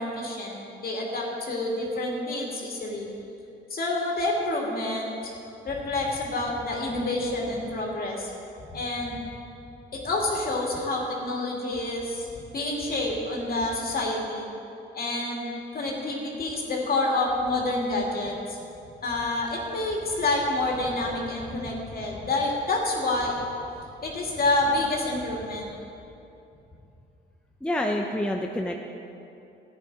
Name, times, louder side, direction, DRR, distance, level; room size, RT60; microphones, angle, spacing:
voice 1, 0.0-3.1 3.7-5.3 5.6-8.3 8.7-9.2 9.9-12.3 12.5-14.5 14.9-15.5 15.7-18.6 19.0-23.4 24.0-25.7, left 2 dB, 50° left, -2 dB, 2.7 m, -28 dB
voice 2, 27.6-28.8, left 1 dB, 5° left, 2 dB, 0.7 m, -27 dB
14.0 x 9.1 x 4.9 m, 2.7 s
cardioid pair, 90°, 20 cm